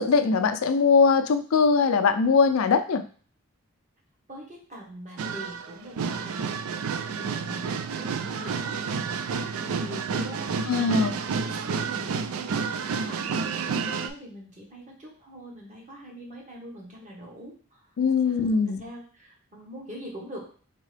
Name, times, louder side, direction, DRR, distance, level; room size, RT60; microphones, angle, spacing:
voice 1, 0.0-3.0 10.7-11.1 18.0-18.8, left 5 dB, 85° left, 9 dB, 0.4 m, -21 dB
voice 2, 4.3-17.9 18.2-20.4, right 1 dB, 35° right, -2 dB, 1.2 m, -43 dB
sound 1, 5.2-14.1, right 5 dB, 90° right, 0.4 m, -30 dB
3.7 x 3.7 x 3.3 m, 0.42 s
head